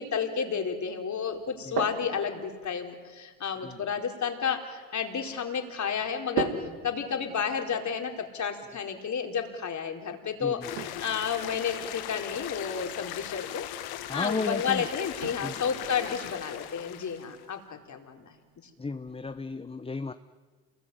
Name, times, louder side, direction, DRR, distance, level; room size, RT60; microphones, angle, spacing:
voice 1, 0.0-6.5 6.8-13.7 14.1-18.3, left 6 dB, 50° left, 4 dB, 4.3 m, -31 dB
sound 1, 1.3-19.4, right 7 dB, 80° right, 2.9 m, -43 dB
sound 2, 10.6-17.4, left 13 dB, 75° left, 1.6 m, -39 dB
voice 2, 14.1-14.9 15.4-15.5 18.8-20.1, left 3 dB, 15° left, 10 dB, 1.0 m, -34 dB
28.0 x 21.5 x 9.3 m, 1.5 s
supercardioid pair, 70°, 38 cm